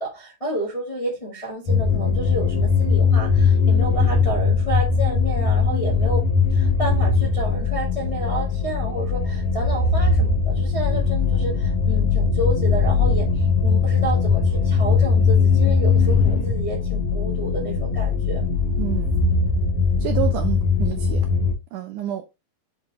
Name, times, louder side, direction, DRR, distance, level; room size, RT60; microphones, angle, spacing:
voice 1, 0.0-18.4, right 1 dB, 20° left, 0.9 m, -30 dB
sound 1, 1.7-21.5, left 4 dB, 55° left, 3.0 m, -20 dB
voice 2, 18.8-19.2 20.0-21.3 21.7-22.2, right 12 dB, 75° right, 1.9 m, -29 dB
7.7 x 3.7 x 3.5 m
omnidirectional pair, 4.2 m